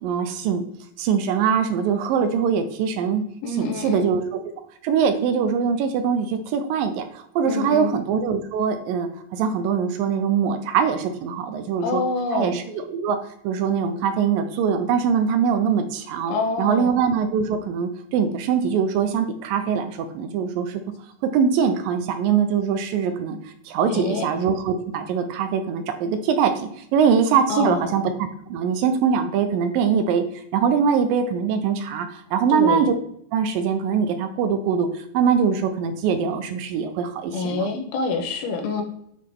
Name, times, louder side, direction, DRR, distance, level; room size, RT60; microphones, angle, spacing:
voice 1, 0.0-0.6 1.0-4.4 4.8-12.0 12.3-13.2 13.4-20.8 21.3-28.0 28.5-32.9 33.3-37.7, right 7 dB, 80° right, 8 dB, 2.2 m, -22 dB
voice 2, 3.4-4.1 7.4-7.9 11.8-12.6 16.3-17.0 23.9-24.3 27.5-27.9 32.5-32.9 37.3-38.8, left 4 dB, 80° left, 4 dB, 3.0 m, -26 dB
8.3 x 5.9 x 3.7 m, 0.71 s
omnidirectional pair, 4.3 m